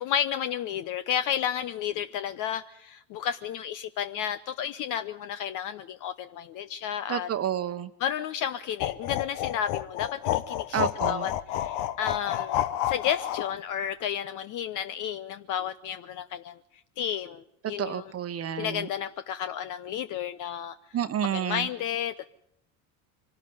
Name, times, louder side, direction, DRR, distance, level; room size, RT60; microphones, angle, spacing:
voice 1, 0.0-7.3 8.0-16.6 17.0-18.1 18.6-20.8 21.3-22.3, left 9 dB, 50° left, 0.8 m, -32 dB
voice 2, 7.1-7.9 10.7-11.3 17.8-18.9 20.9-21.7, right 9 dB, 35° right, 1.1 m, -30 dB
sound 1, 8.8-13.5, left 12 dB, 70° left, 1.1 m, -30 dB
24.0 x 13.0 x 9.5 m
hypercardioid pair, 90°, 40 cm